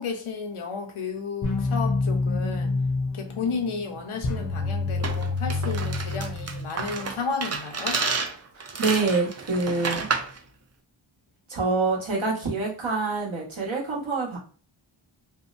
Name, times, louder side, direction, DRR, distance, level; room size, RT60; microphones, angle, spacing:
voice 1, 0.0-2.8 3.1-8.0, left 5 dB, 85° left, 0.7 m, -32 dB
sound 1, 1.4-7.0, left 3 dB, 40° left, 0.5 m, -27 dB
sound 2, 5.0-10.4, right 4 dB, 35° right, 0.4 m, -30 dB
voice 2, 8.8-10.1 11.5-14.4, right 3 dB, 70° right, 1.1 m, -26 dB
2.7 x 2.1 x 2.4 m
wide cardioid pair, 70°, 48 cm